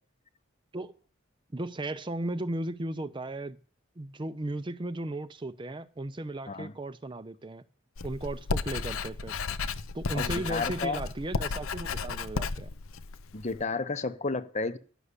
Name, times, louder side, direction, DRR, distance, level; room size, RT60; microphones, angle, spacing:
voice 1, 1.5-3.6 4.0-7.6 8.0-9.4 9.9-12.7, right 1 dB, 25° right, 0.5 m, -35 dB
Writing, 8.0-13.6, left 4 dB, 80° left, 0.6 m, -33 dB
voice 2, 10.1-11.0 13.3-14.8, left 3 dB, 35° left, 0.8 m, -32 dB
11.0 x 6.4 x 8.2 m
head